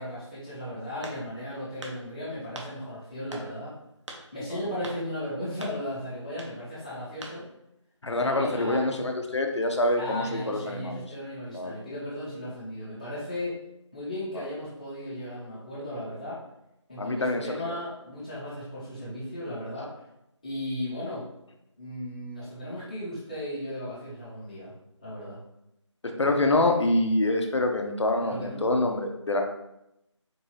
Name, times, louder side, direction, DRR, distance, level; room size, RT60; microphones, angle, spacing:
voice 1, 0.0-3.7 4.3-7.4 8.1-8.9 9.9-13.5 13.9-16.4 16.9-20.0 20.4-21.2 21.8-24.7 25.0-25.4 28.2-28.6, left 1 dB, 15° left, -11 dB, 1.0 m, -36 dB
sound 1, 1.0-1.4 1.8-2.0 2.6-2.7 3.3-3.5 4.1-4.2 4.8-5.0 5.6-5.8 6.3-6.5 7.2-7.4, right 1 dB, 70° right, 0.9 m, -41 dB
voice 2, 8.0-11.0 11.5-11.8 14.4-14.5 17.0-17.7 26.0-29.4, left 2 dB, 65° left, 4 dB, 0.7 m, -26 dB
4.4 x 2.7 x 3.2 m, 0.84 s
figure-of-eight pair, 175°, 16 cm